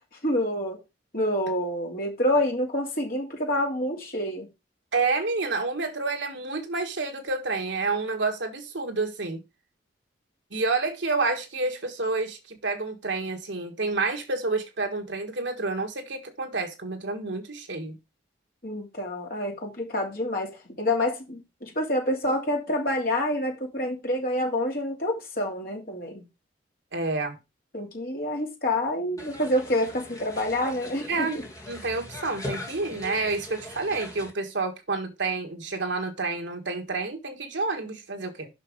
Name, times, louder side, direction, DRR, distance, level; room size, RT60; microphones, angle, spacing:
voice 1, 0.2-0.8 1.1-4.5 18.6-26.2 27.7-31.4, left 1 dB, 50° left, 3.0 m, -27 dB
voice 2, 4.9-9.4 10.5-18.0 26.9-27.4 31.1-31.4 31.7-38.5, right 3 dB, 70° right, 1.6 m, -29 dB
sound 1, 29.2-34.3, left 1 dB, 20° left, 1.7 m, -40 dB
6.0 x 5.5 x 5.1 m
head